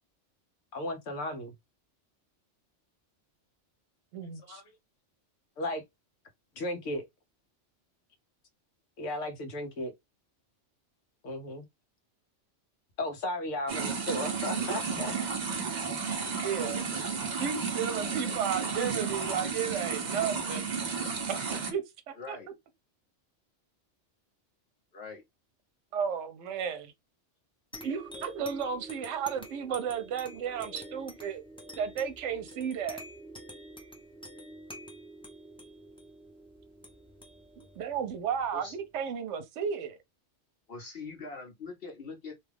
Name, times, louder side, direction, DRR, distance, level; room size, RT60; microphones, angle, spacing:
voice 1, 0.7-1.5 4.5-4.6 5.6-5.8 6.6-7.1 9.0-9.9 11.2-11.7 13.0-15.1, left 1 dB, 80° left, 1.2 m, -35 dB
voice 2, 4.1-4.6 16.4-16.9 17.4-20.6 21.3-22.4 25.9-26.9 27.8-31.4 31.8-33.0 37.6-40.0, right 7 dB, 80° right, 0.9 m, -33 dB
sound 1, 13.7-21.7, right 5 dB, 45° right, 0.8 m, -33 dB
voice 3, 22.2-22.5 24.9-25.2 38.5-38.7 40.7-42.4, left 4 dB, 55° left, 1.2 m, -42 dB
sound 2, 27.7-38.8, equal, 5° left, 0.5 m, -48 dB
2.8 x 2.3 x 3.3 m
omnidirectional pair, 1.2 m